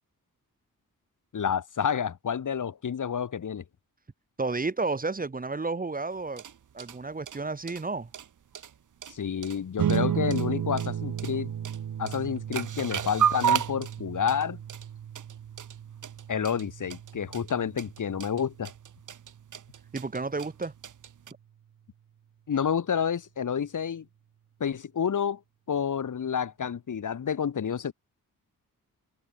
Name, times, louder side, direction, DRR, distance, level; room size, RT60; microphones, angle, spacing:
voice 1, 1.3-3.6 9.1-11.5 12.0-14.6 16.3-18.7 22.5-24.1 24.6-25.4 25.7-27.9, left 7 dB, 65° left, 5.5 m, -29 dB
voice 2, 4.4-6.4 6.7-8.1 19.9-20.7, right 3 dB, 25° right, 2.8 m, -31 dB
sound 1, 6.1-21.3, right 8 dB, 65° right, 1.9 m, -34 dB
sound 2, 9.8-20.5, right 9 dB, 80° right, 2.6 m, -35 dB
wide cardioid pair, 145°, 34 cm